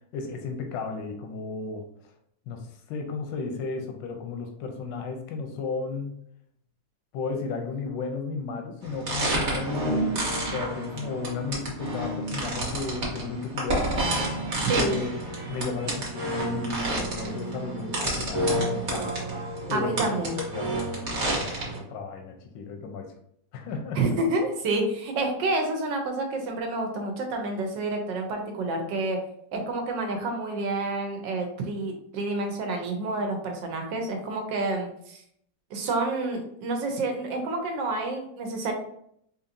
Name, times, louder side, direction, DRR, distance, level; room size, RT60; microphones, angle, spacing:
voice 1, 0.1-1.9 2.5-6.1 7.1-13.9 14.8-15.1 15.5-19.1 19.7-20.1 20.5-23.1 23.5-24.0, left 4 dB, 85° left, 3 dB, 1.3 m, -34 dB
sound 1, 8.8-21.8, right 1 dB, 45° right, 1.2 m, -29 dB
voice 2, 19.7-20.3 23.9-29.2 29.5-35.2 35.7-38.7, right 2 dB, 85° right, 3 dB, 1.5 m, -29 dB
4.6 x 2.8 x 2.6 m, 0.71 s
omnidirectional pair, 1.9 m